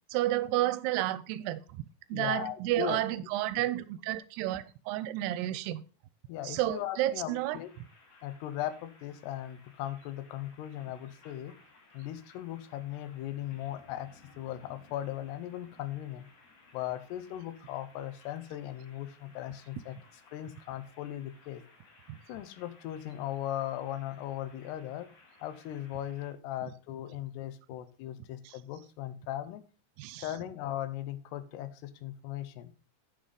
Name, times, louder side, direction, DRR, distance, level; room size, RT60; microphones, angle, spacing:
voice 1, 0.1-1.8 2.1-5.8 6.4-7.6 22.1-22.2 28.5-28.6 30.0-30.3, right 15 dB, 85° right, 2.7 m, -31 dB
voice 2, 2.1-3.3 6.3-7.7 8.2-11.5 11.9-16.3 16.7-20.0 20.3-21.6 22.3-25.1 25.4-29.6 30.2-32.7, left 12 dB, 85° left, 3.0 m, -38 dB
sound 1, 7.4-26.3, left 3 dB, 45° left, 3.4 m, -60 dB
9.1 x 7.2 x 5.2 m
omnidirectional pair, 4.7 m